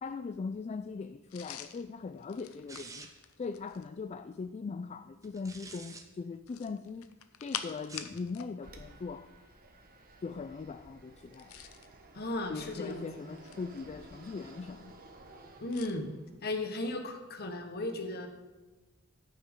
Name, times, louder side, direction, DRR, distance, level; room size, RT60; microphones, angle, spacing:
voice 1, 0.0-3.1 3.4-7.1 7.4-9.3 10.2-11.6 12.5-14.9, left 4 dB, 30° left, 10 dB, 0.3 m, -40 dB
sound 1, 1.3-4.0 6.4-8.5 8.8-9.0 11.2-11.9 12.7-13.8 15.7-16.0, left 9 dB, 85° left, 0.7 m, -45 dB
sound 2, 2.7-3.3 5.2-6.0 7.8-8.2, right 3 dB, 15° right, 0.8 m, -48 dB
Fixed-wing aircraft airplane, 8.6-16.4, right 2 dB, 45° right, 1.1 m, -54 dB
voice 2, 12.1-13.1 15.6-16.1 16.4-18.3, left 2 dB, 50° left, 5 dB, 1.2 m, -35 dB
14.5 x 6.7 x 3.7 m, 1.2 s
head